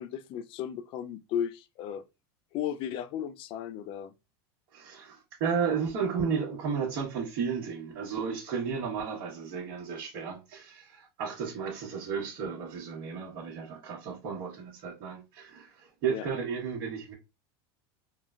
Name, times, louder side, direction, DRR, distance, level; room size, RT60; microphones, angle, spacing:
voice 1, 0.0-2.0 2.5-4.1 16.1-16.3, left 9 dB, 40° left, 0.4 m, -35 dB
voice 2, 4.7-17.1, right 6 dB, 55° right, 1.1 m, -33 dB
3.8 x 2.1 x 2.3 m
supercardioid pair, 130°, 13 cm